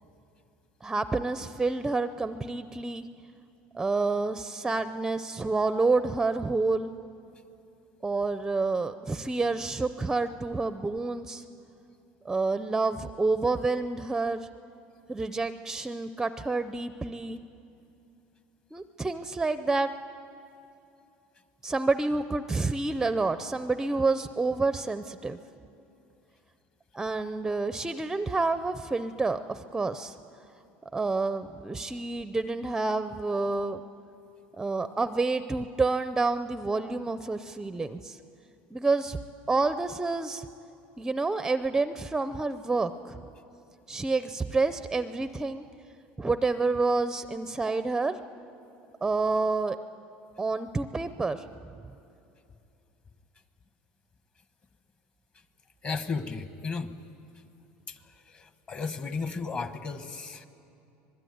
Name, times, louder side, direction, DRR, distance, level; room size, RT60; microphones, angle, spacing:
voice 1, 0.8-3.1 3.7-6.9 8.0-11.4 12.2-14.5 15.1-17.4 18.7-19.9 21.6-25.4 26.9-30.2 30.9-33.8 34.6-38.2 38.7-39.2 39.5-40.5 41.0-43.2 43.9-45.6 46.2-48.2 49.0-49.8 50.4-51.4, right 3 dB, 10° right, 11 dB, 0.5 m, -28 dB
voice 2, 55.8-56.9 57.9-60.5, left 4 dB, 30° left, 10 dB, 1.2 m, -34 dB
25.5 x 20.5 x 9.4 m, 2.7 s
cardioid pair, 145°, 5 cm